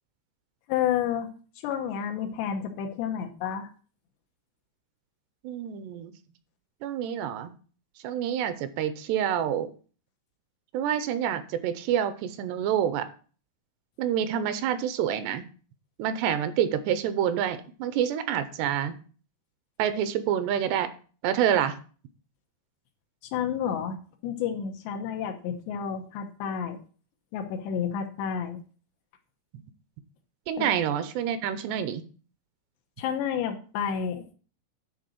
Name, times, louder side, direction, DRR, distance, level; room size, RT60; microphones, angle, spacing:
voice 1, 0.7-1.3 1.6-3.7 23.3-24.0 24.2-26.8 27.3-28.6 30.6-30.7 33.0-34.3, left 8 dB, 90° left, 4 dB, 3.2 m, -30 dB
voice 2, 5.4-6.1 6.8-7.5 8.0-9.7 10.7-13.1 14.0-15.4 16.0-19.0 19.8-20.9 21.2-21.8 30.5-32.0, right 9 dB, 80° right, 11 dB, 2.8 m, -27 dB
10.5 x 3.9 x 6.5 m, 0.40 s
omnidirectional pair, 4.9 m